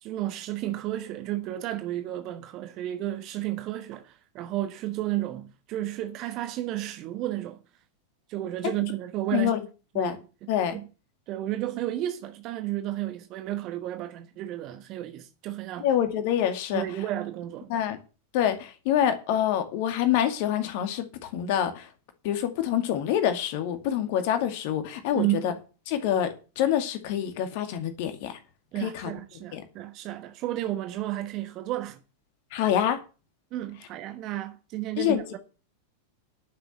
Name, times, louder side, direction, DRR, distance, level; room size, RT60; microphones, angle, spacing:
voice 1, 0.0-7.6 8.3-9.5 9.9-10.2 10.7-10.8 11.3-15.9 16.7-17.7 25.1-25.5 28.7-32.0 33.5-35.4, right 14 dB, 40° right, 1.2 m, -32 dB
voice 2, 10.5-10.8 15.8-16.8 17.7-18.0 18.3-21.9 22.2-25.5 25.9-28.4 28.8-29.1 29.5-29.6 32.5-33.0 35.0-35.2, left 10 dB, 50° left, 2.2 m, -26 dB
11.5 x 6.8 x 8.4 m
figure-of-eight pair, 90°, 0 cm